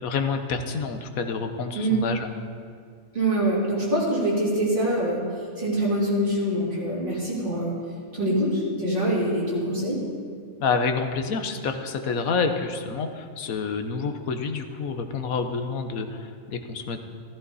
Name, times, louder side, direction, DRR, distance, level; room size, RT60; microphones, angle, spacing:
voice 1, 0.0-2.3 10.6-17.0, left 5 dB, 80° left, 7 dB, 1.4 m, -28 dB
voice 2, 3.1-5.2 5.6-7.7 8.1-10.0, right 1 dB, 35° right, -7 dB, 4.0 m, -24 dB
15.0 x 14.0 x 4.1 m, 2.1 s
omnidirectional pair, 1.5 m